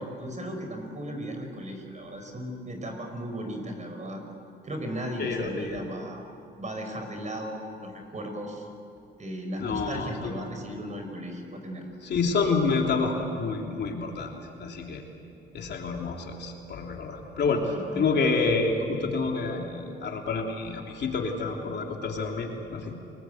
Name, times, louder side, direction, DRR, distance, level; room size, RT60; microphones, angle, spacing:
voice 1, 0.0-4.2 4.6-6.2 6.6-8.7 9.2-11.8 17.4-18.1, equal, 35° right, 4 dB, 5.3 m, -36 dB
voice 2, 5.2-5.8 9.6-10.3 12.0-14.3 14.6-15.0 15.5-17.6 17.9-22.9, left 4 dB, 60° left, 1 dB, 3.3 m, -28 dB
29.0 x 19.5 x 8.0 m, 2.6 s
cardioid pair, 90°, 20 cm